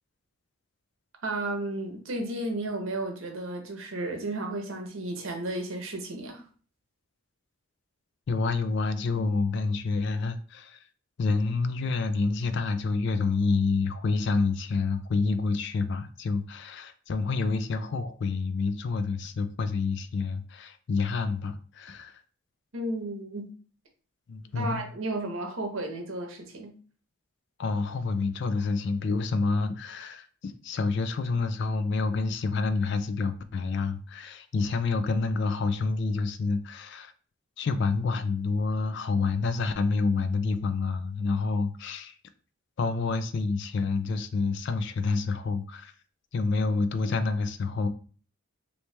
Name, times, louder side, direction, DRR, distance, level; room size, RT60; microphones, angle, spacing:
voice 1, 1.2-6.4 22.7-23.5 24.5-26.7, right 2 dB, 70° right, 0.9 m, -33 dB
voice 2, 8.3-10.8 11.2-22.1 24.3-24.9 27.6-37.1 37.6-42.1 42.8-45.9 46.3-47.9, left 4 dB, 55° left, 0.3 m, -28 dB
3.0 x 2.8 x 3.2 m
head